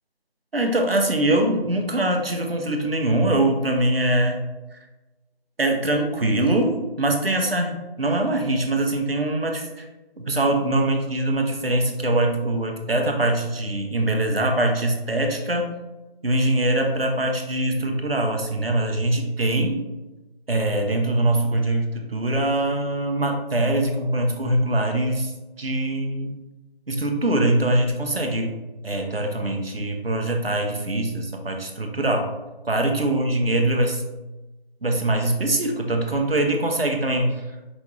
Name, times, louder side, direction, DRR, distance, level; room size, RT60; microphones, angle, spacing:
voice 1, 0.5-4.4 4.7-4.8 5.6-9.9 10.2-15.7 16.2-19.8 20.5-25.3 25.6-26.4 26.9-28.6 28.8-32.3 32.6-34.0 34.8-37.4, right 1 dB, 65° right, 3 dB, 0.8 m, -23 dB
5.1 x 3.2 x 2.4 m, 1.1 s
figure-of-eight pair, 175°, 31 cm